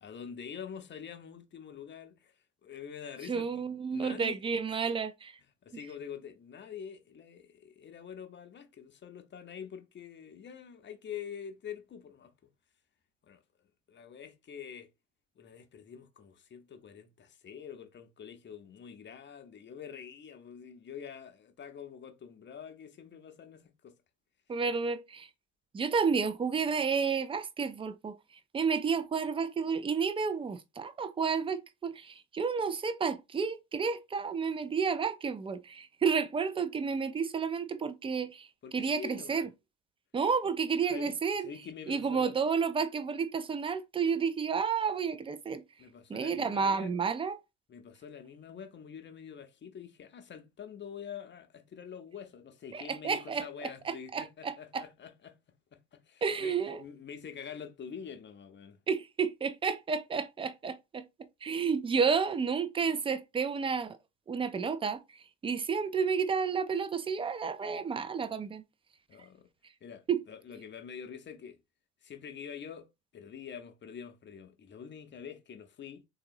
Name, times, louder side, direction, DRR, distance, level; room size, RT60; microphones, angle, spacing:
voice 1, 0.0-4.4 4.7-4.8 5.6-12.3 13.2-13.4 13.9-14.9 15.4-24.0 38.6-39.5 40.4-40.5 40.9-41.2 41.4-42.4 45.8-46.9 47.7-55.4 55.7-58.8 69.1-69.5 69.8-71.6 72.0-76.0, left 7 dB, 30° left, 0.7 m, -46 dB
voice 2, 3.3-5.4 24.5-25.3 25.7-28.2 28.5-38.5 38.7-39.5 40.1-41.5 41.9-45.6 46.1-47.4 52.7-54.8 56.2-56.8 58.9-61.0 61.4-64.0 64.3-68.6 70.1-70.2, right 5 dB, 15° right, 0.4 m, -31 dB
3.7 x 2.8 x 2.5 m
hypercardioid pair, 60°, 37 cm